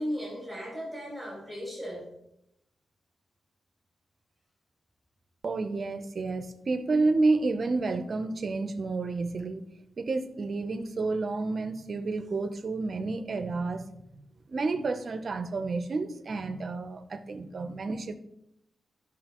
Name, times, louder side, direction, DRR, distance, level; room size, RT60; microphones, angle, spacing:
voice 1, 0.0-2.0, equal, 5° left, -5 dB, 3.7 m, -36 dB
voice 2, 5.4-9.7 10.0-13.9 14.1-14.2 14.5-18.2, right 3 dB, 40° right, 9 dB, 0.6 m, -30 dB
12.0 x 6.2 x 3.0 m, 0.80 s
wide cardioid pair, 160°, 0 cm